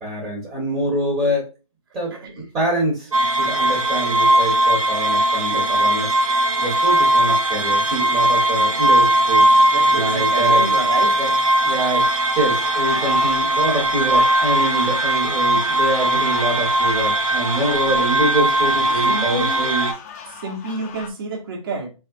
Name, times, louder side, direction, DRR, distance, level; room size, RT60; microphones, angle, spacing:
voice 1, 0.0-1.5 1.9-3.1 3.4-9.4 9.9-10.7 11.2-11.3 11.6-19.9, right 1 dB, 15° right, 1.3 m, -25 dB
sound 1, 3.1-19.9, right 1 dB, 75° right, 1.0 m, -19 dB
voice 2, 9.7-11.2 17.8-18.0 18.9-19.6 20.3-21.9, right 3 dB, 40° right, 1.3 m, -29 dB
sound 2, 12.0-21.1, left 7 dB, 25° left, 0.7 m, -35 dB
4.0 x 3.4 x 2.5 m
hypercardioid pair, 150°, 18 cm